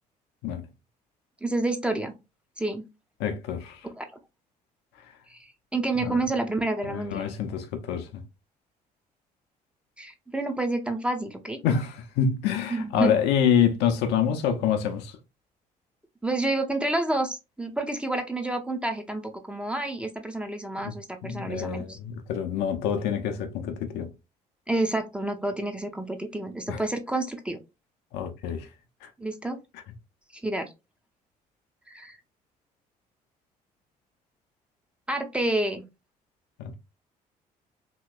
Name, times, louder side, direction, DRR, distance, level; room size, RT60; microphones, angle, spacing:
voice 1, 1.4-2.2 2.6-2.8 4.0-4.1 5.3-7.2 10.0-11.6 12.7-13.1 16.2-22.0 24.7-27.6 29.2-29.6 30.3-30.7 31.9-32.2 35.1-35.8, right 2 dB, 5° right, 0.5 m, -29 dB
voice 2, 3.2-3.8 6.0-6.2 6.9-8.2 11.6-15.2 20.8-20.9 21.2-24.1 26.7-26.8 28.1-28.7 29.0-29.1 36.6-36.8, left 8 dB, 55° left, 0.5 m, -27 dB
2.8 x 2.8 x 2.3 m
figure-of-eight pair, 50°, 20 cm